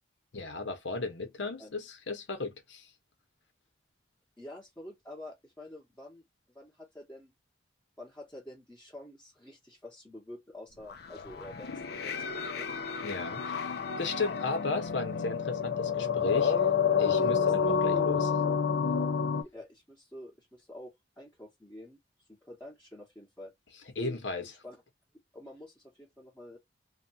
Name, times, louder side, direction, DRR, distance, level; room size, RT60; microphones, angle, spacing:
voice 1, 0.3-2.9 13.0-16.7 17.0-18.3 24.0-24.5, left 3 dB, 80° left, 1.0 m, -35 dB
voice 2, 4.4-7.3 8.0-12.7 17.1-17.7 18.1-18.3 19.4-22.0 22.3-23.5 23.9-24.8 25.3-26.6, left 1 dB, 10° left, 1.0 m, -48 dB
sound 1, 10.9-19.4, left 6 dB, 60° left, 0.5 m, -29 dB
2.9 x 2.3 x 2.7 m
head